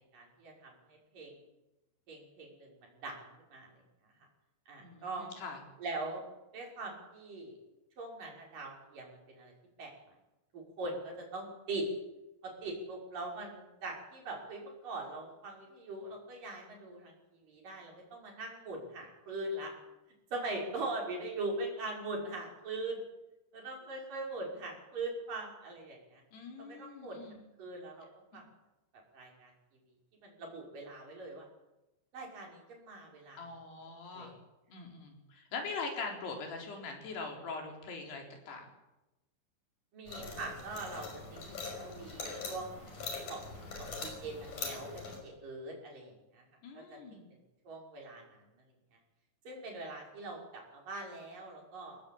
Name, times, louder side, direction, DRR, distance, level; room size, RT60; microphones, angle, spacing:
voice 1, 0.1-0.7 1.1-1.3 2.1-3.7 4.7-5.3 5.8-6.2 6.5-7.6 8.0-9.5 9.8-9.9 10.5-11.9 12.4-19.7 20.3-23.0 23.5-26.2 26.6-27.2 27.6-28.1 28.3-28.4 29.1-29.5 30.2-31.5 32.1-33.4 34.1-34.4 39.9-42.7 43.3-43.4 43.8-46.4 46.7-47.2 47.7-48.2 49.5-52.0, right 2 dB, 55° right, -1 dB, 7.2 m, -41 dB
voice 2, 4.8-5.6 26.3-27.4 33.4-34.3 34.7-38.7 46.6-47.2, left 4 dB, 90° left, 2 dB, 6.2 m, -42 dB
sound 1, 40.1-45.2, left 4 dB, 55° left, 6.9 m, -42 dB
23.5 x 19.0 x 8.7 m, 1.0 s
omnidirectional pair, 4.5 m